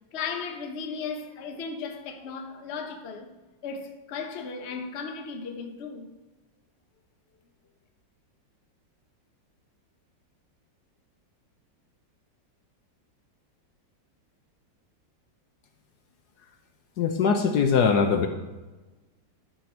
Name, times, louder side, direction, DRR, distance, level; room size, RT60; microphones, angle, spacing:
voice 1, 0.1-3.3 3.6-6.1, left 5 dB, 45° left, 0.9 m, -36 dB
voice 2, 17.0-18.3, left 6 dB, 65° left, 1.2 m, -21 dB
12.0 x 4.5 x 6.0 m
omnidirectional pair, 2.0 m